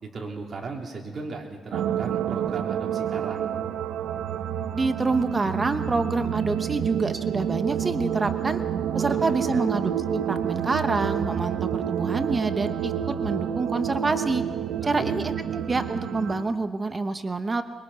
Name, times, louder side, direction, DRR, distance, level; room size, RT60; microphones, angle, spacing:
voice 1, 0.0-3.5 8.9-9.7 14.8-15.2, right 4 dB, 45° right, 0 dB, 3.6 m, -36 dB
sound 1, 1.7-16.4, right 9 dB, 85° right, 1.0 m, -29 dB
voice 2, 4.7-8.6 8.9-14.4 14.8-17.6, right 3 dB, 25° right, 9 dB, 1.0 m, -27 dB
23.0 x 22.5 x 5.8 m, 1.4 s
cardioid pair, 110°, 0 cm